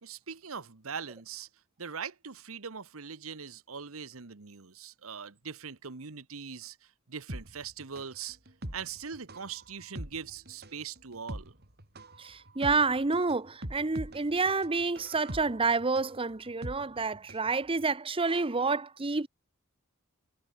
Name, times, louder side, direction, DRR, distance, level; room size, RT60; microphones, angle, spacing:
voice 1, 0.0-1.5 1.8-6.8 7.1-8.4 8.7-11.5, right 6 dB, 80° right, 1.2 m, -41 dB
sound 1, 7.3-17.5 17.8-17.9, right 1 dB, 50° right, 5.2 m, -43 dB
voice 2, 12.2-19.3, right 4 dB, 25° right, 0.9 m, -29 dB
head